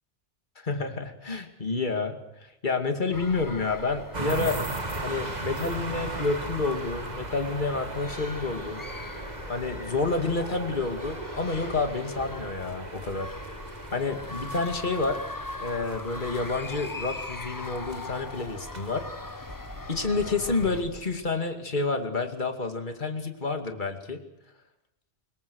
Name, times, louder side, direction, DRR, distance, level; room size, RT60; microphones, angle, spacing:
voice 1, 0.6-4.6 5.0-8.8 9.5-13.3 13.9-15.2 15.6-19.1 19.9-24.2, left 3 dB, 40° left, 6 dB, 2.6 m, -29 dB
sound 1, 3.1-20.8, left 2 dB, 20° left, 0.9 m, -41 dB
sound 2, 4.1-21.4, right 2 dB, 35° right, 2.0 m, -38 dB
25.0 x 22.5 x 6.4 m, 0.84 s
omnidirectional pair, 1.2 m